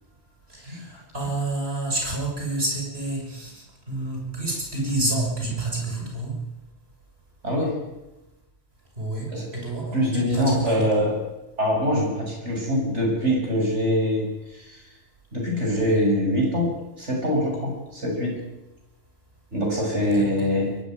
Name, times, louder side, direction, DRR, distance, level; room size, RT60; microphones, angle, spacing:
voice 1, 0.5-6.3 9.0-10.0 10.3-11.1 20.1-20.5, right 2 dB, 60° right, -1 dB, 6.6 m, -29 dB
voice 2, 7.4-7.8 9.3-9.5 9.9-11.2 11.6-14.8 15.3-18.4 19.5-20.8, equal, 80° right, 0 dB, 7.6 m, -24 dB
23.0 x 13.5 x 9.5 m, 0.99 s
omnidirectional pair, 1.2 m